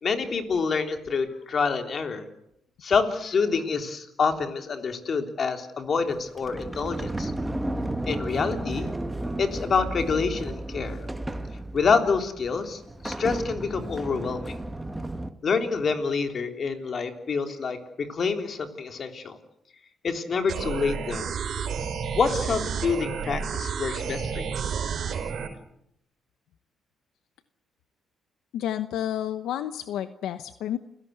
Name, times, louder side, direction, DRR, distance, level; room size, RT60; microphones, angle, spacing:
voice 1, 0.0-2.3 2.8-7.3 8.1-8.9 9.4-11.0 11.7-14.5 15.4-17.8 18.1-19.4 20.0-21.3 22.1-24.6, left 5 dB, 50° left, 6 dB, 3.5 m, -27 dB
Sliding door, 6.1-15.3, right 1 dB, 10° right, 1.9 m, -33 dB
sound 1, 20.5-25.5, right 6 dB, 65° right, 5.1 m, -31 dB
voice 2, 28.5-30.8, left 11 dB, 85° left, 11 dB, 1.0 m, -30 dB
29.5 x 17.0 x 8.1 m, 0.78 s
cardioid pair, 90°, 0 cm